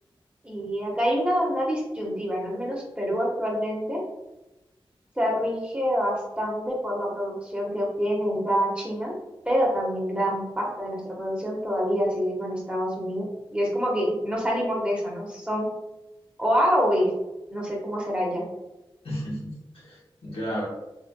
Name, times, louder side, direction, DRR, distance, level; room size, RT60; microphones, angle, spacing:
voice 1, 0.4-4.0 5.2-9.1 9.4-15.7 16.4-17.1 17.5-18.4, equal, 10° right, -3 dB, 1.2 m, -26 dB
voice 2, 19.0-20.7, equal, 80° left, -5 dB, 1.2 m, -33 dB
3.4 x 3.3 x 2.2 m, 0.99 s
cardioid pair, 50°, 10 cm